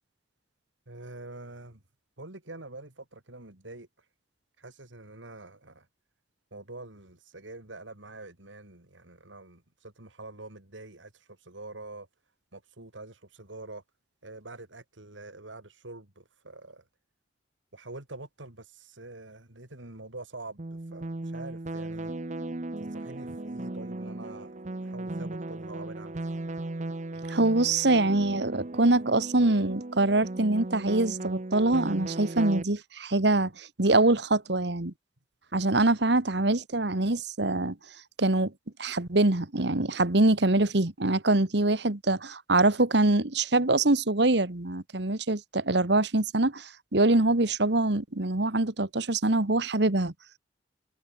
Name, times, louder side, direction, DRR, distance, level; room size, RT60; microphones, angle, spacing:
voice 1, 0.9-1.8 2.2-4.1 4.6-5.9 6.5-12.1 12.5-13.8 14.2-16.9 17.7-22.1 22.8-26.2, right 2 dB, 85° right, 3.2 m, -45 dB
sound 1, 20.6-32.6, right 2 dB, 40° right, 0.9 m, -36 dB
voice 2, 27.3-34.9 35.5-37.7 38.2-38.5 38.8-50.1, right 2 dB, 65° right, 1.7 m, -24 dB
head